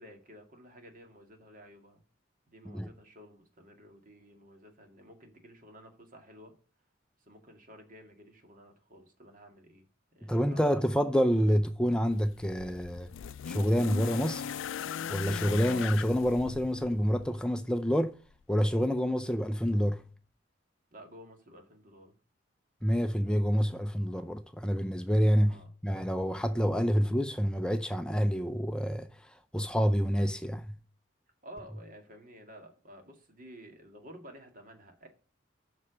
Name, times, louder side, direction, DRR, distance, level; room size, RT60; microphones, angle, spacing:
voice 1, 0.0-2.0 2.5-6.5 7.3-9.9 10.1-10.8 20.9-22.2 25.4-25.7 31.4-35.1, equal, 45° right, 2.1 m, -52 dB
voice 2, 10.3-13.1 13.5-14.5 15.1-18.2 18.5-20.0 22.8-29.1 29.5-30.7, equal, 5° left, 0.4 m, -28 dB
sound 1, 12.1-17.3 18.4-18.5, left 8 dB, 85° left, 0.4 m, -39 dB
7.6 x 6.0 x 6.2 m
head